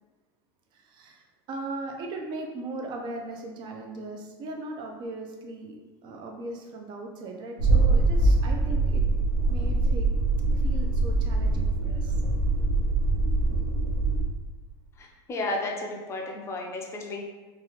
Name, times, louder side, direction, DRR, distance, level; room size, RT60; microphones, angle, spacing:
voice 1, 0.7-5.8 6.0-9.0 9.5-10.1 10.5-12.1, right 2 dB, 40° right, 2 dB, 0.5 m, -38 dB
sound 1, 7.6-14.2, right 2 dB, 90° right, 0.6 m, -23 dB
voice 2, 15.0-17.2, left 2 dB, 20° left, 1 dB, 0.5 m, -33 dB
3.0 x 2.3 x 3.0 m, 1.3 s
supercardioid pair, 125°, 13 cm